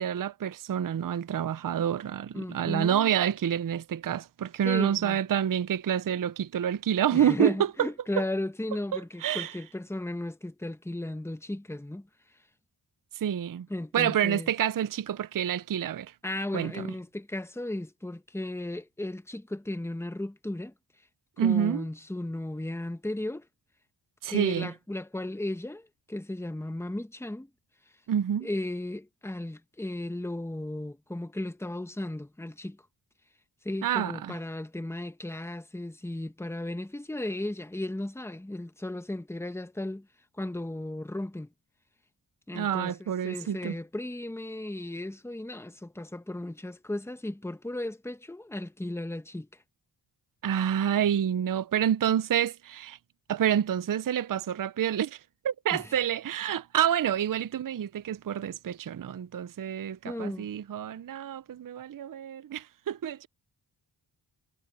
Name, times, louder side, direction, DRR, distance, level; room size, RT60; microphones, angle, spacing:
voice 1, 0.0-7.9 9.2-9.5 13.2-13.7 13.9-16.1 16.5-16.9 21.4-21.8 24.2-24.7 28.1-28.5 33.8-34.4 42.5-43.8 50.4-53.0 53.3-55.2 55.4-63.3, right 9 dB, 45° right, 0.6 m, -28 dB
voice 2, 2.3-3.1 4.6-5.2 7.1-12.1 13.7-14.5 16.2-20.7 21.4-23.5 24.2-27.5 28.4-32.8 33.6-40.1 40.4-41.5 42.5-49.5 55.7-56.0 60.0-60.5, left 1 dB, 5° left, 1.2 m, -35 dB
cardioid pair, 60°, 48 cm